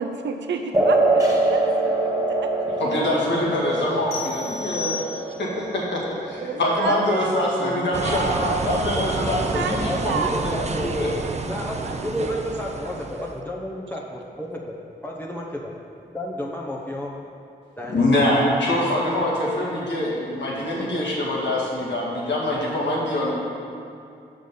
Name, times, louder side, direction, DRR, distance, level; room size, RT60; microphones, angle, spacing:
voice 1, 0.0-2.7 4.6-4.8 5.1-5.2 6.4-7.3 7.7-8.8 9.5-10.9 11.2-11.4 11.8-11.9 12.2-12.4 13.1-13.3, right 5 dB, 85° right, 5 dB, 0.5 m, -32 dB
sound 1, 0.7-7.8, right 2 dB, 20° right, 1.5 m, -24 dB
voice 2, 2.8-5.0 5.4-6.0 6.3-11.1 17.9-23.3, left 1 dB, 75° left, -4 dB, 1.8 m, -24 dB
sound 2, 4.1-5.6, left 5 dB, 60° left, 2.0 m, -33 dB
voice 3, 6.9-10.9 11.4-14.7 15.0-15.7 16.1-17.1 17.8-18.1, left 1 dB, 10° left, -3 dB, 0.9 m, -31 dB
sound 3, 7.9-13.4, right 3 dB, 35° right, 0.6 m, -29 dB
6.1 x 5.3 x 6.8 m, 2.5 s
cardioid pair, 55°, 19 cm